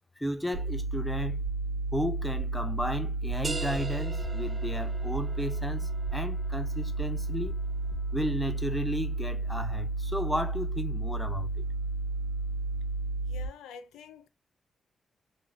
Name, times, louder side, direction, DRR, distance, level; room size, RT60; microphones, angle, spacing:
voice 1, 0.2-1.4 1.9-7.6 8.1-11.6, equal, 5° left, 0.7 m, -34 dB
sound 1, 0.5-13.5, right 2 dB, 85° right, 0.6 m, -32 dB
sound 2, 3.4-8.8, right 3 dB, 35° right, 0.3 m, -42 dB
voice 2, 13.2-14.3, left 7 dB, 90° left, 0.4 m, -47 dB
3.2 x 2.6 x 2.5 m
supercardioid pair, 60°, 0 cm